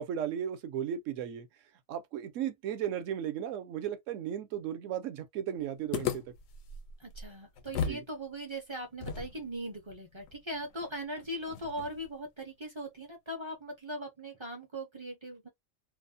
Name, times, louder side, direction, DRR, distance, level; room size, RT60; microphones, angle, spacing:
voice 1, 0.0-1.5 1.9-6.2 7.9-8.0, right 9 dB, 75° right, 1.0 m, -35 dB
sound 1, 5.9-8.1 8.3-8.4 9.0-12.1, left 7 dB, 85° left, 1.0 m, -38 dB
voice 2, 7.0-15.5, right 1 dB, 40° right, 0.4 m, -40 dB
2.6 x 2.0 x 2.5 m
omnidirectional pair, 1.3 m